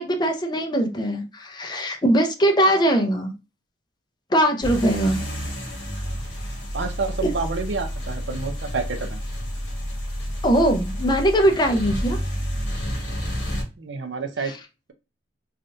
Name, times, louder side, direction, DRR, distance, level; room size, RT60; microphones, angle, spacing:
voice 1, 0.0-3.3 4.3-5.2 7.2-7.3 10.4-12.2, right 1 dB, 25° left, 4 dB, 0.5 m, -21 dB
sound 1, 4.6-13.6, equal, 70° left, 1.3 m, -30 dB
voice 2, 6.7-9.2 13.8-14.6, right 4 dB, 80° right, 8 dB, 0.5 m, -29 dB
3.4 x 2.4 x 2.6 m, 0.29 s
head